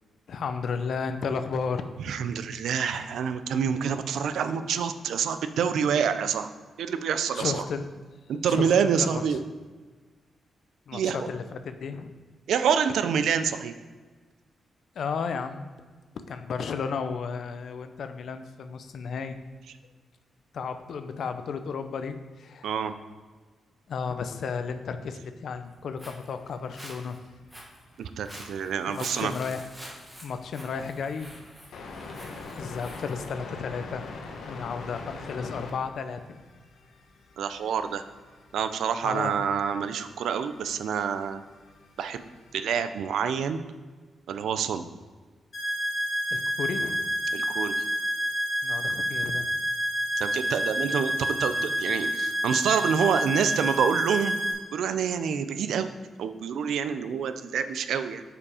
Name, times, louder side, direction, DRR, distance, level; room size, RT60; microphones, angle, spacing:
voice 1, 0.3-1.8 7.3-7.9 8.4-9.4 10.9-12.1 15.0-15.7 16.3-19.4 20.5-22.7 23.9-27.2 28.9-29.7 30.2-32.0 32.5-34.0 34.5-36.4 39.0-39.4 46.3-47.1 48.6-49.5, left 5 dB, 55° left, 9 dB, 0.5 m, -33 dB
voice 2, 2.0-6.5 6.8-7.6 8.3-9.4 10.9-11.3 12.5-13.7 22.6-22.9 28.0-29.3 37.4-38.0 38.5-41.4 42.0-42.2 42.5-43.6 44.3-44.8 47.3-47.7 50.2-54.4 54.7-55.9 56.2-58.2, right 7 dB, 80° right, 10 dB, 0.4 m, -27 dB
Walk footsteps, 25.7-33.3, equal, 5° right, 1.0 m, -47 dB
sound 1, 27.5-27.6 28.0-42.7, left 3 dB, 75° left, 1.0 m, -45 dB
sound 2, 45.5-54.5, equal, 35° left, 2.0 m, -28 dB
7.1 x 5.1 x 4.9 m, 1.4 s
wide cardioid pair, 165°, 0 cm